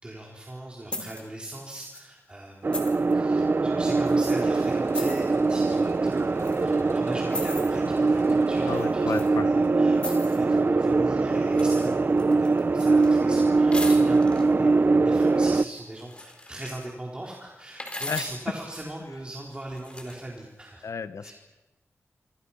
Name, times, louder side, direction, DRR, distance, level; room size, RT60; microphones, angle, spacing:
voice 1, 0.0-9.0 9.3-20.8 21.2-21.3, right 1 dB, 20° right, -1 dB, 4.0 m, -39 dB
sound 1, 0.9-1.2 1.8-2.0 2.7-3.1 4.1-4.2 4.9-5.2 6.4-6.6 7.3-7.7 8.8-9.3 9.9-10.4 11.5-11.9 12.2-13.1 13.7-14.4 15.7-16.9 17.8-18.4 19.6-20.2, left 1 dB, 20° left, 4.3 m, -37 dB
sound 2, 2.6-15.6, right 3 dB, 40° right, 0.7 m, -22 dB
sound 3, 4.3-10.2, left 3 dB, 55° left, 2.5 m, -52 dB
voice 2, 8.7-9.5 18.1-18.2 20.8-21.3, left 5 dB, 80° left, 11 dB, 1.3 m, -32 dB
27.0 x 26.0 x 5.8 m, 1.1 s
wide cardioid pair, 105°, 5 cm